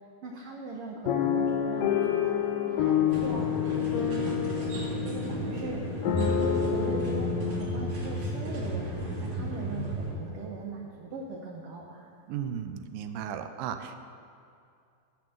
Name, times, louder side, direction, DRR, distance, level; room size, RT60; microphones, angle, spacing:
voice 1, 0.2-2.3 2.6-3.5 3.7-4.7 5.0-12.1, right 3 dB, 75° right, -1 dB, 1.4 m, -40 dB
sound 1, 1.1-9.2 9.8-9.9 10.1-10.4, left 8 dB, 85° left, 2.5 m, -29 dB
sound 2, 3.1-10.1, right 1 dB, 55° right, 3.2 m, -34 dB
voice 2, 12.3-14.0, right 8 dB, 90° right, 8 dB, 2.4 m, -35 dB
12.0 x 6.1 x 7.5 m, 2.5 s
omnidirectional pair, 3.9 m